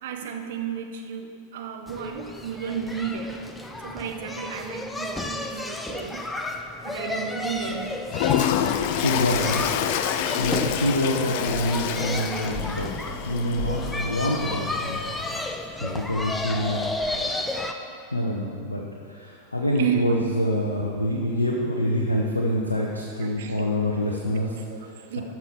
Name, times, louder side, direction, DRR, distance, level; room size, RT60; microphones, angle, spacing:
voice 1, 0.0-3.4 3.8-6.3 6.8-8.3 19.8-20.2 23.2-23.8 24.7-24.8 25.1-25.2, right 8 dB, 55° right, 4 dB, 0.9 m, -32 dB
sound 1, 1.9-17.7, left 2 dB, 5° left, 0.6 m, -33 dB
sound 2, 7.8-14.6, left 4 dB, 30° left, 1.5 m, -40 dB
Toilet flush, 8.1-15.6, left 9 dB, 50° left, 0.5 m, -28 dB
voice 2, 9.0-9.7 10.4-12.9 13.2-15.5 15.8-16.8 18.1-25.2, left 1 dB, 80° left, -2 dB, 0.9 m, -26 dB
13.0 x 6.1 x 4.9 m, 2.5 s
figure-of-eight pair, 90°, 0 cm